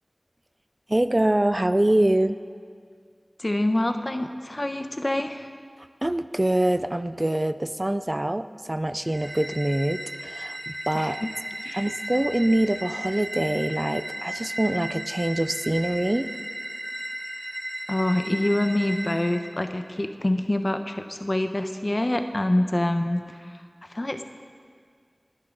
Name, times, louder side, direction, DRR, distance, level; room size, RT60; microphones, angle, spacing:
voice 1, 0.9-2.3 6.0-11.2 11.7-16.3, right 1 dB, 30° right, 11 dB, 0.5 m, -24 dB
voice 2, 3.4-5.5 10.9-11.3 11.6-11.8 17.9-23.2 23.9-24.2, left 1 dB, 40° left, 7 dB, 1.0 m, -26 dB
sound 1, 9.0-19.5, right 1 dB, 15° right, 1.7 m, -35 dB
29.5 x 10.5 x 4.0 m, 2.1 s
wide cardioid pair, 50°, 0 cm